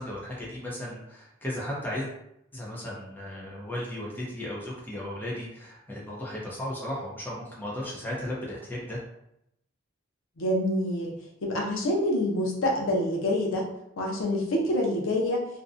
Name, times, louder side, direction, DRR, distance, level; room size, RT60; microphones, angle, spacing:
voice 1, 0.0-2.1 2.5-9.0, left 1 dB, 10° left, -5 dB, 0.5 m, -35 dB
voice 2, 10.4-11.1 11.4-13.7 14.0-15.5, left 1 dB, 80° left, 0 dB, 0.6 m, -26 dB
2.6 x 2.1 x 2.5 m, 0.79 s
head